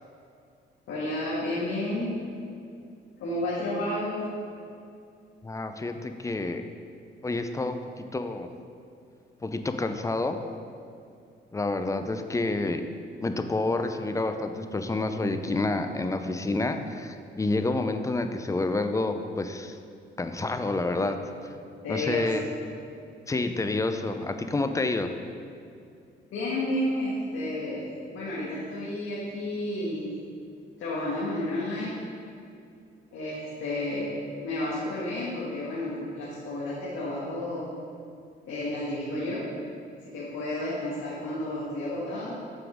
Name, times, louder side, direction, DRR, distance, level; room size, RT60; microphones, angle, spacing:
voice 1, 0.9-2.2 3.2-4.4 21.0-21.1 21.8-22.3 26.3-30.1 30.8-32.1 33.1-34.1 34.4-37.7 38.5-39.4 40.0-42.4, left 1 dB, 80° left, -7 dB, 1.4 m, -31 dB
voice 2, 5.4-6.6 7.2-8.5 9.4-10.4 11.5-12.8 13.2-19.8 20.2-21.2 21.9-22.4 23.3-25.1, left 2 dB, 15° left, 7 dB, 0.4 m, -28 dB
7.7 x 3.9 x 5.0 m, 2.5 s
cardioid pair, 90°, 20 cm